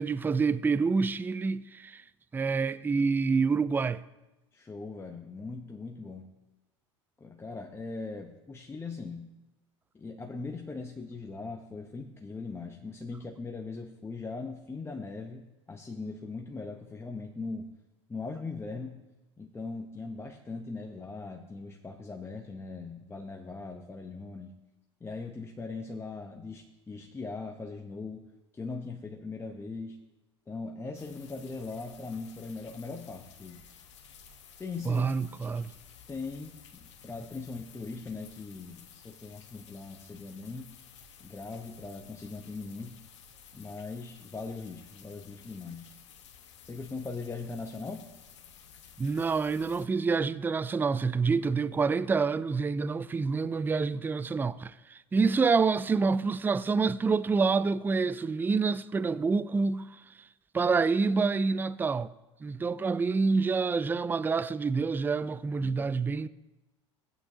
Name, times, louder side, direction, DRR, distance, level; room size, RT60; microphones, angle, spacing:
voice 1, 0.0-2.0 2.3-4.0 34.9-35.7 49.0-59.9 60.5-62.1 62.4-66.3, right 4 dB, 15° right, 0.4 m, -27 dB
voice 2, 4.5-6.3 7.2-9.3 9.9-17.7 18.1-19.0 19.4-24.5 25.0-30.0 30.5-33.7 34.6-35.1 35.5-35.6 36.1-40.7 41.2-43.0 43.5-45.9 46.6-48.1 65.6-65.9, left 3 dB, 15° left, 0.9 m, -40 dB
sound 1, 30.9-49.9, left 7 dB, 75° left, 1.2 m, -54 dB
16.5 x 8.9 x 2.9 m
hypercardioid pair, 75°, 15 cm